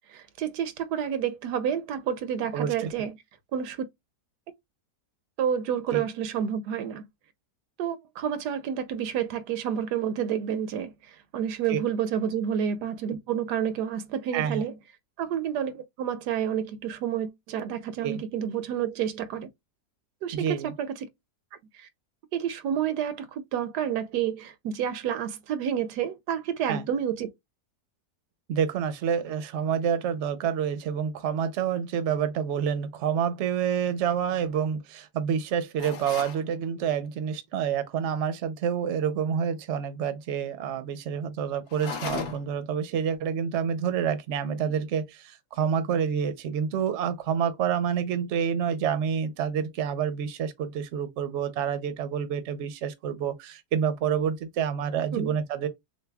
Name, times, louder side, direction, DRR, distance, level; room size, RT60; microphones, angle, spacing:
voice 1, 0.1-3.1 3.5-3.8 5.4-7.1 7.8-14.7 15.2-19.5 20.2-21.1 21.8-21.9 22.3-27.3 55.1-55.3, right 9 dB, 85° right, 1.2 m, -29 dB
voice 2, 2.5-2.9 5.9-6.0 11.7-11.8 14.3-14.6 18.0-18.2 20.3-20.7 26.7-26.8 28.5-55.7, right 8 dB, 60° right, 0.8 m, -28 dB
sound 1, 35.8-36.4 41.7-42.6, left 5 dB, 65° left, 1.3 m, -35 dB
6.4 x 2.2 x 2.2 m
omnidirectional pair, 1.7 m